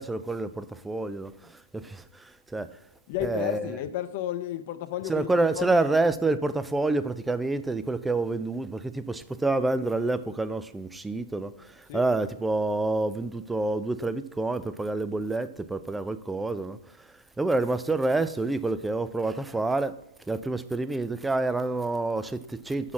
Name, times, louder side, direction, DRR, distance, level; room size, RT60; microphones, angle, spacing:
voice 1, 0.0-1.3 1.7-1.8 2.5-2.7 3.2-3.8 5.0-11.5 11.9-16.8 17.4-19.9 20.3-22.9, right 2 dB, 5° right, 0.4 m, -27 dB
voice 2, 3.1-5.3 5.5-5.7 11.9-12.0, left 12 dB, 45° left, 0.7 m, -32 dB
6.1 x 5.8 x 6.2 m
hypercardioid pair, 135°, 0 cm